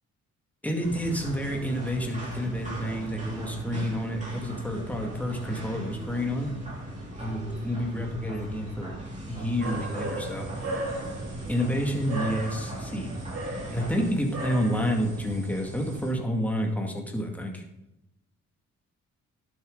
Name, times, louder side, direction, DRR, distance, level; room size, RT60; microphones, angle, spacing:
voice 1, 0.6-6.5 7.2-8.9 9.3-10.7 11.5-13.1 13.7-17.6, equal, 5° left, 2 dB, 2.1 m, -29 dB
sound 1, 0.8-14.1, right 1 dB, 25° right, 4.3 m, -39 dB
sound 2, 9.6-16.1, right 2 dB, 55° right, 3.2 m, -37 dB
11.5 x 7.7 x 4.0 m, 0.88 s
cardioid pair, 90°, 30 cm